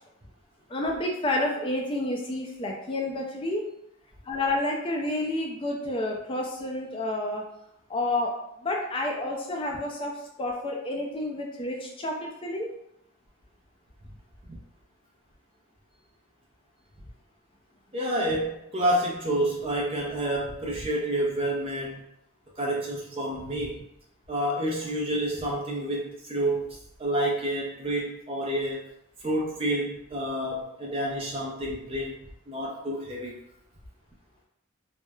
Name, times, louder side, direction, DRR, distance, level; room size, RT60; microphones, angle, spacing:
voice 1, 0.7-3.6 4.2-7.4 7.9-8.3 8.6-12.7, left 1 dB, 25° left, 0 dB, 0.4 m, -30 dB
voice 2, 17.9-22.1 22.6-23.8 24.3-26.7 27.0-28.8 29.2-32.2 32.5-33.4, right 1 dB, 25° right, -2 dB, 0.5 m, -29 dB
3.0 x 2.0 x 2.2 m, 0.80 s
head